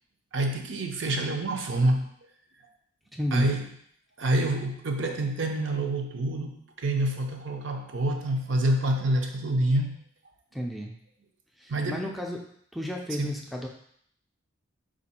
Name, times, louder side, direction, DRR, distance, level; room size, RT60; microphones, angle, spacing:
voice 1, 0.3-2.1 3.3-3.6 4.2-10.0 11.7-12.0 13.2-13.3, right 1 dB, 65° right, 3 dB, 0.6 m, -27 dB
voice 2, 3.1-3.6 10.5-11.0 11.6-12.5 12.7-13.7, equal, ahead, 0 dB, 0.3 m, -32 dB
4.4 x 2.5 x 4.1 m, 0.66 s
head